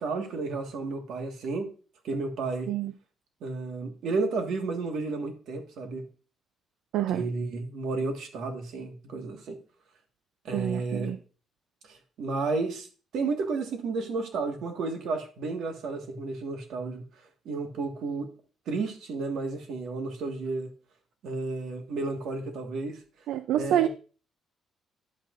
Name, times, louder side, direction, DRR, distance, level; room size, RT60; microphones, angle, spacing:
voice 1, 0.0-1.7 2.0-2.7 3.4-6.0 7.1-9.6 10.4-11.2 11.9-12.9 13.1-17.0 17.4-18.3 18.7-20.7 21.2-23.0 23.5-23.9, right 3 dB, 60° right, 1.6 m, -32 dB
voice 2, 10.5-11.2 23.3-23.9, right 11 dB, 80° right, 0.4 m, -27 dB
10.5 x 8.3 x 2.5 m
cardioid pair, 175°, 0 cm